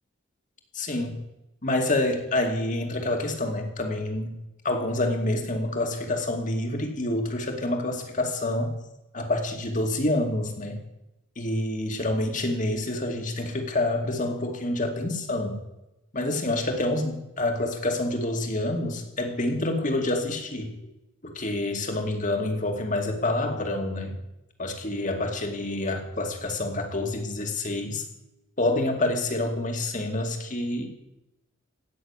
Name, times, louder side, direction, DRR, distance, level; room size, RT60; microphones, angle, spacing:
voice 1, 0.7-1.2 1.6-4.4 4.6-8.8 9.1-10.8 11.4-15.6 16.1-20.8 21.2-24.2 24.6-28.0 28.6-31.0, left 1 dB, 40° left, 4 dB, 2.4 m, -27 dB
16.0 x 6.8 x 9.8 m, 0.93 s
head